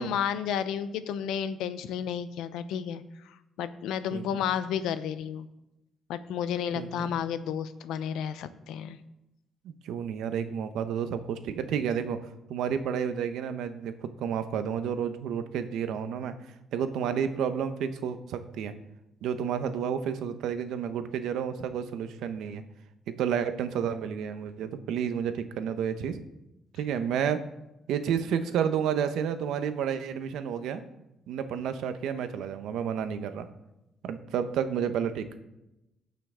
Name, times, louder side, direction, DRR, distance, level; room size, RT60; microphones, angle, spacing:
voice 1, 0.0-5.5 6.1-9.0, left 8 dB, 90° left, 13 dB, 0.6 m, -32 dB
voice 2, 4.1-4.4 6.7-7.1 9.8-12.2 12.5-16.3 16.7-18.7 19.2-22.6 23.2-26.2 26.8-27.4 27.9-30.8 31.3-33.5 34.0-35.4, right 8 dB, 85° right, 10 dB, 0.9 m, -30 dB
16.5 x 5.7 x 3.7 m, 0.92 s
cardioid pair, 90°, 0 cm